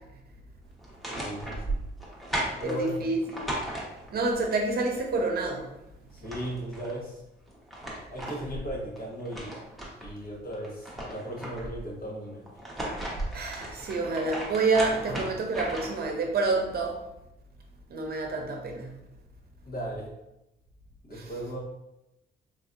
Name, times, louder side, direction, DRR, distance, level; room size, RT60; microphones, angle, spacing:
sound 1, 0.8-4.3 5.8-5.9 6.1-7.0 7.5-10.1 10.5-11.9 12.5-16.1, right 1 dB, ahead, 1.0 m, -36 dB
voice 1, 1.1-1.8 2.6-3.0 6.1-7.2 8.1-9.6 10.0-12.4 19.7-20.1 21.0-21.6, right 1 dB, 45° left, -3 dB, 1.3 m, -36 dB
voice 2, 2.6-3.2 4.1-5.6 13.3-17.0 17.9-18.9, right 3 dB, 50° right, 2 dB, 0.7 m, -28 dB
3.9 x 2.7 x 2.5 m, 0.90 s
cardioid pair, 90°, 20 cm